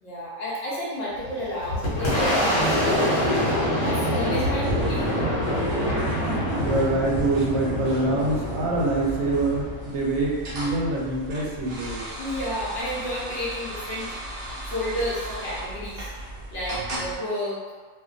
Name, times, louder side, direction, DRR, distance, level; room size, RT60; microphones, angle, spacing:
voice 1, 0.0-3.2 3.8-5.3 12.2-14.1 14.7-16.1 16.5-17.6, left 1 dB, 60° left, -8 dB, 0.8 m, -31 dB
Boom, 1.2-10.6, equal, 75° left, 1.1 m, -25 dB
sound 1, 4.6-17.1, equal, 55° right, 0.9 m, -37 dB
voice 2, 6.5-12.1, right 2 dB, 85° right, -3 dB, 1.0 m, -25 dB
2.4 x 2.1 x 2.4 m, 1.5 s
omnidirectional pair, 1.4 m